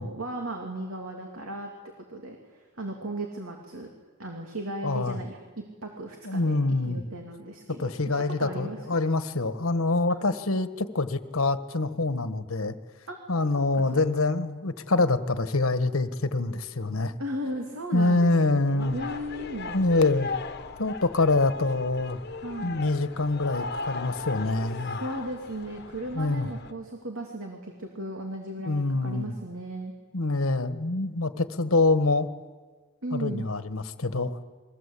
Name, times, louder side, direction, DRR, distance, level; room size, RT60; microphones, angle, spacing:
voice 1, 0.0-1.7 2.0-3.9 4.2-5.4 5.8-6.6 6.9-7.9 8.4-8.8 13.1-13.2 13.7-13.8 17.2-20.1 22.4-22.9 24.9-29.9 33.0-33.4, right 1 dB, 85° right, 1 dB, 3.2 m, -36 dB
voice 2, 4.8-5.2 6.2-7.0 7.8-12.7 13.3-17.1 17.9-19.0 19.7-20.3 20.8-22.2 22.6-25.0 26.1-26.5 28.7-29.3 30.1-32.3 33.1-34.4, left 2 dB, 85° left, 10 dB, 1.5 m, -25 dB
sound 1, 18.8-26.7, left 4 dB, 50° left, 1.2 m, -37 dB
29.0 x 22.0 x 8.5 m, 1.4 s
head